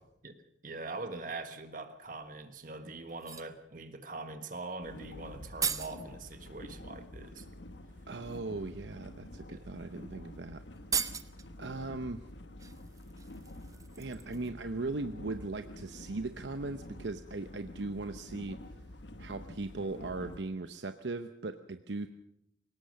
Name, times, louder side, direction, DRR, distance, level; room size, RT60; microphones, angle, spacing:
voice 1, 0.6-7.4 9.5-9.6, right 3 dB, 45° right, 8 dB, 1.5 m, -42 dB
sound 1, 2.2-2.3 3.1-3.6 5.1-5.2 5.3-6.0 7.4-7.5 8.2-8.4 9.3-9.4 9.7-9.9 10.1-10.2 10.8-11.5 12.6-14.6 14.9-15.1, right 6 dB, 20° right, 0.9 m, -37 dB
sound 2, 4.8-20.4, left 1 dB, 80° left, 1.4 m, -48 dB
voice 2, 8.1-10.6 11.6-12.2 14.0-18.6 19.2-22.1, right 3 dB, 75° right, 9 dB, 0.8 m, -38 dB
22.0 x 18.5 x 6.5 m, 0.80 s
head